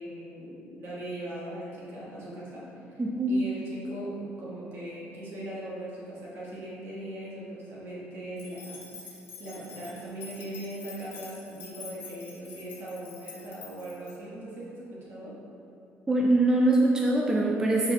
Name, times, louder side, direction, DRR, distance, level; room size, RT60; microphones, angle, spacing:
voice 1, 0.0-3.0 3.3-15.4, right 1 dB, 65° right, -7 dB, 1.4 m, -40 dB
voice 2, 3.0-3.4 16.1-17.9, right 2 dB, 15° right, -2 dB, 0.4 m, -23 dB
sound 1, 8.4-14.1, left 4 dB, 50° left, 0.9 m, -47 dB
4.7 x 4.4 x 2.3 m, 2.6 s
cardioid pair, 110°, 5 cm